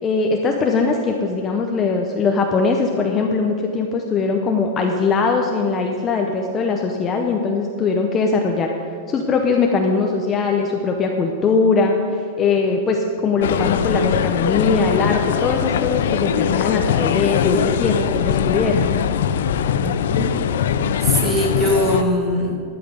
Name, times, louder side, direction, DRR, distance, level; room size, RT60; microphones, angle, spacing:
voice 1, 0.0-8.7 9.1-18.9, left 4 dB, 20° left, 2 dB, 0.7 m, -20 dB
sound 1, 13.4-22.0, left 8 dB, 75° left, 0.5 m, -21 dB
voice 2, 19.8-20.3 21.0-22.6, equal, 10° right, 0 dB, 1.6 m, -21 dB
12.0 x 5.9 x 8.2 m, 2.3 s
supercardioid pair, 165°, 0 cm